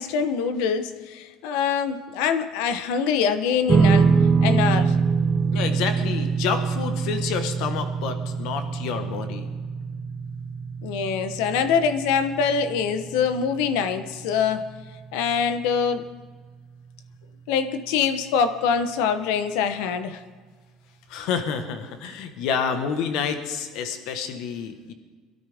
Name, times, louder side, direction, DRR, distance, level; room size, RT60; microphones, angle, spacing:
voice 1, 0.0-4.1 4.4-5.0 10.8-14.6 15.1-16.0 17.5-20.2, left 6 dB, 90° left, 10 dB, 1.0 m, -24 dB
sound 1, 3.7-16.2, right 5 dB, 20° right, 0.9 m, -25 dB
voice 2, 5.5-9.5 21.1-24.9, left 6 dB, 65° left, 8 dB, 1.3 m, -29 dB
22.5 x 12.5 x 3.6 m, 1.5 s
cardioid pair, 160°, 0 cm